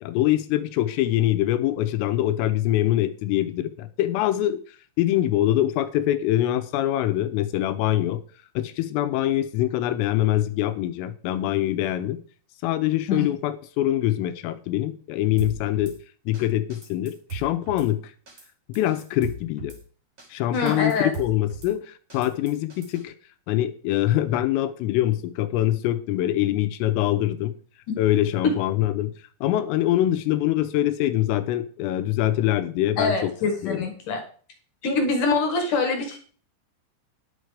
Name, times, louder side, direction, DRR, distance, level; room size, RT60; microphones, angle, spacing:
voice 1, 0.0-4.6 5.0-8.2 8.6-12.2 12.6-16.0 16.3-18.0 18.8-19.7 20.3-23.2 23.5-27.5 28.0-29.1 29.4-33.9, left 13 dB, 90° left, 10 dB, 3.5 m, -24 dB
Drum kit / Snare drum, 15.4-16.0 16.3-16.4 16.7-17.9 18.3-18.5 18.7-19.8 20.2-20.3 20.5-21.7 22.1-23.0, right 4 dB, 35° right, 3.8 m, -38 dB
voice 2, 20.5-21.1 27.9-28.0 28.4-28.5 33.0-34.2 34.8-36.2, left 3 dB, 55° left, 5 dB, 2.5 m, -24 dB
10.5 x 7.9 x 5.0 m, 0.42 s
omnidirectional pair, 5.8 m